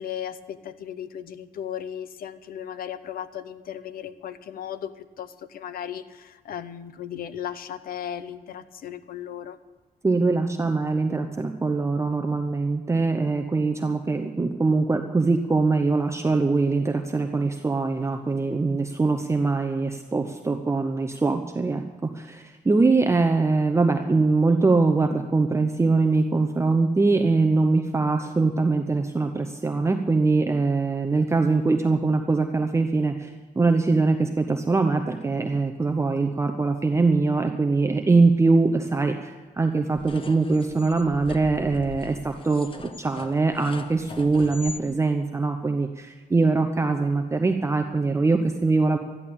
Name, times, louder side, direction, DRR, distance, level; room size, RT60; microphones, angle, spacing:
voice 1, 0.0-9.6, left 9 dB, 80° left, 13 dB, 0.8 m, -36 dB
voice 2, 10.0-42.7 43.0-49.0, right 3 dB, 20° right, 5 dB, 0.8 m, -22 dB
sound 1, 39.9-44.8, left 4 dB, 35° left, 1.0 m, -41 dB
13.5 x 11.0 x 7.1 m, 1.4 s
cardioid pair, 125°, 15 cm